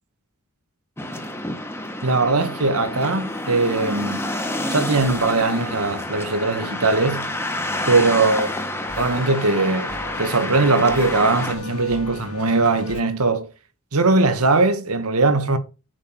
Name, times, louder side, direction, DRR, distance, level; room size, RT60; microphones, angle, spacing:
sound 1, 1.0-11.5, left 1 dB, 10° left, 1.4 m, -29 dB
voice 1, 2.0-4.3 4.7-7.3 7.9-8.5 9.0-9.9 10.2-13.5 13.9-15.6, right 3 dB, 85° right, 1.7 m, -20 dB
sound 2, 5.0-13.0, left 2 dB, 75° left, 2.1 m, -38 dB
7.2 x 6.1 x 6.2 m
head